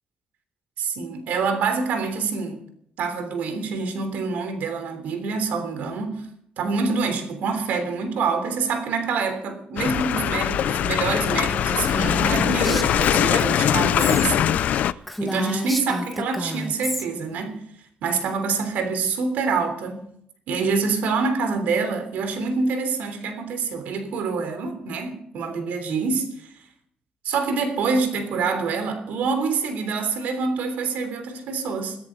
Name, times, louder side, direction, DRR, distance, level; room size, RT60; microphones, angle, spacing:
voice 1, 0.8-2.6 3.0-6.2 6.6-14.9 15.2-17.6 18.0-20.0 20.5-26.5 27.2-32.0, right 4 dB, 90° right, 3.3 m, -26 dB
sound 1, 9.8-14.9, left 11 dB, 70° left, 0.6 m, -22 dB
Female speech woman speaking, 11.8-14.3 14.6-14.7 15.0-17.1, equal, ahead, 1.8 m, -30 dB
21.5 x 17.0 x 3.9 m
cardioid pair, 155°, 3 cm